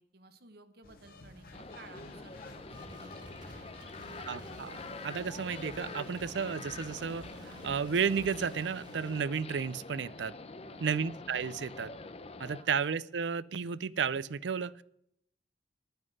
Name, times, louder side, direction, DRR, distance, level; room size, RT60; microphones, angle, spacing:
voice 1, 0.0-4.3 10.6-11.1 12.5-12.7, right 3 dB, 60° right, 9 dB, 1.2 m, -57 dB
sound 1, 0.8-8.7, left 1 dB, 55° left, 1.8 m, -52 dB
sound 2, 1.5-12.6, left 3 dB, 35° left, 0.8 m, -46 dB
sound 3, 2.7-9.2, right 2 dB, 25° right, 2.1 m, -52 dB
voice 2, 4.3-10.4 10.8-11.9 12.4-14.8, right 6 dB, 75° right, 19 dB, 0.5 m, -33 dB
9.7 x 9.3 x 6.3 m, 0.74 s
head